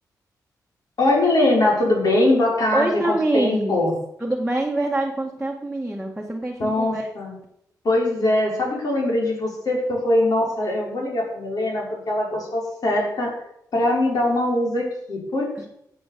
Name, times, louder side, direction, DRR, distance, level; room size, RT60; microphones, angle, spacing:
voice 1, 1.0-3.9 6.6-7.3 7.8-13.4 13.7-15.7, left 1 dB, 60° left, -2 dB, 5.6 m, -22 dB
voice 2, 2.7-3.8 4.2-7.1 15.6-15.7, right 2 dB, 5° right, -2 dB, 1.8 m, -25 dB
13.5 x 8.2 x 6.9 m, 0.75 s
wide cardioid pair, 115°, 7 cm